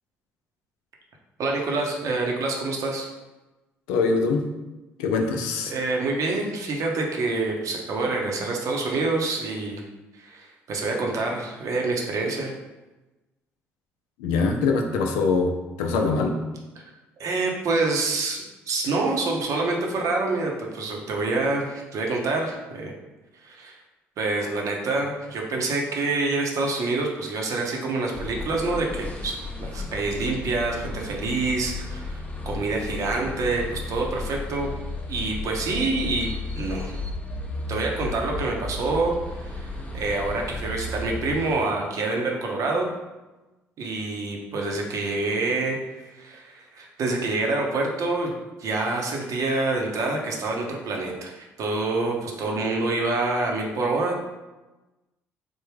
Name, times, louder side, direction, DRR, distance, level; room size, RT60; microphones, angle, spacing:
voice 1, 1.4-3.1 5.7-9.8 10.2-12.5 16.8-16.9 17.2-22.9 23.4-23.8 24.2-34.7 35.1-36.3 36.5-37.0 37.7-42.9 43.8-48.3 48.6-54.2, right 3 dB, 60° right, 0 dB, 0.7 m, -27 dB
voice 2, 3.9-4.4 5.0-5.7 14.2-15.5 15.8-16.3, left 4 dB, 80° left, 3 dB, 0.4 m, -23 dB
sound 1, 28.1-41.6, left 2 dB, 20° left, 0.6 m, -34 dB
3.4 x 2.1 x 3.3 m, 1.1 s
hypercardioid pair, 55°, 6 cm